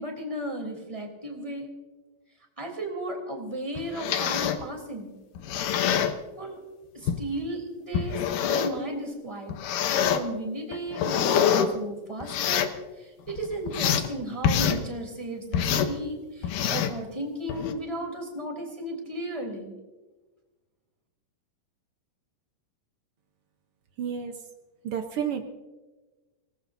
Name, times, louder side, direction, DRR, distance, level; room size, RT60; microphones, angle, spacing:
voice 1, 0.0-1.7 2.6-5.1 6.4-6.6 6.9-9.6 10.1-12.7 13.0-19.8, right 1 dB, 10° right, 1 dB, 3.1 m, -35 dB
sound 1, 3.8-4.6 5.3-6.1 7.1-7.2 7.9-8.8 9.5-10.2 10.7-11.7 12.2-12.8 13.3-14.1 14.4-14.8 15.5-15.9 16.4-17.0 17.5-17.7, left 8 dB, 70° left, 2.4 m, -25 dB
voice 2, 24.0-24.3 24.8-25.4, right 8 dB, 90° right, 5 dB, 1.2 m, -30 dB
26.0 x 18.5 x 2.7 m, 1.2 s
omnidirectional pair, 4.0 m